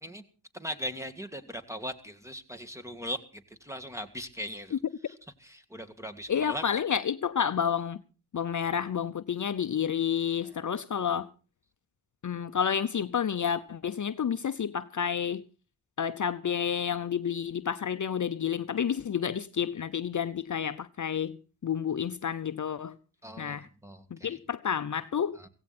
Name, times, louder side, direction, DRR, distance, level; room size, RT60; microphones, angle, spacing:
voice 1, 0.5-6.6 10.4-10.6 23.2-24.4 25.3-25.5, equal, 5° right, 2.0 m, -40 dB
voice 2, 6.3-8.0 8.3-11.3 12.2-15.4 16.0-21.4 21.6-22.9 23.4-23.7 24.1-25.4, left 8 dB, 45° left, 0.7 m, -30 dB
16.5 x 16.5 x 4.3 m
cardioid pair, 70°, 40 cm